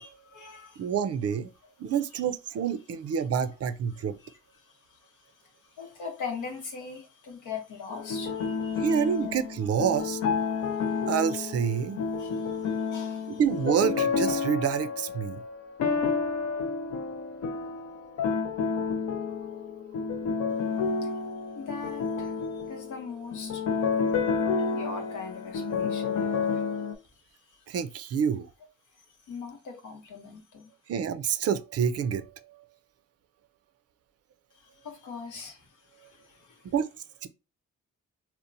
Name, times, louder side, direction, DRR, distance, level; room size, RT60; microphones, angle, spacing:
voice 1, 0.0-0.9 2.1-2.2 3.9-5.3 5.6-9.0 10.7-10.8 12.2-13.4 21.0-21.1 21.5-22.3 22.7-23.6 24.6-26.6 27.5-27.6 29.2-30.7 34.5-36.7, left 5 dB, 85° left, 0.8 m, -41 dB
voice 2, 0.8-1.5 1.8-4.2 8.8-10.2 11.1-12.0 13.3-15.6 27.7-28.5 30.9-32.3 36.7-36.9 37.2-37.3, right 7 dB, 55° right, 0.4 m, -28 dB
sound 1, 7.9-26.9, left 5 dB, 65° left, 0.5 m, -30 dB
2.8 x 2.0 x 2.6 m
supercardioid pair, 55°, 30 cm